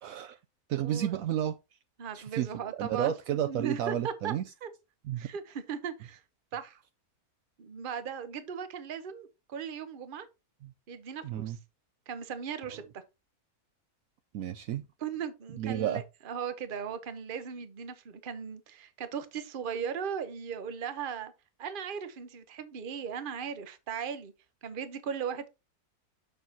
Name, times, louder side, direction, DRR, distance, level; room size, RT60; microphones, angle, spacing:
voice 1, 0.0-0.4 0.7-1.6 2.1-2.5 2.8-4.4 5.0-5.3 10.6-10.7 11.2-11.6 14.3-14.8 15.6-16.0, right 11 dB, 70° right, 0.9 m, -31 dB
voice 2, 0.7-1.1 2.0-3.1 3.5-4.3 4.6-4.7 5.2-6.2 6.5-6.8 7.6-10.3 10.9-11.6 12.1-13.0 15.0-21.3 21.6-24.3 24.6-25.5, right 7 dB, 40° right, 0.9 m, -37 dB
6.7 x 6.6 x 2.7 m
omnidirectional pair, 1.6 m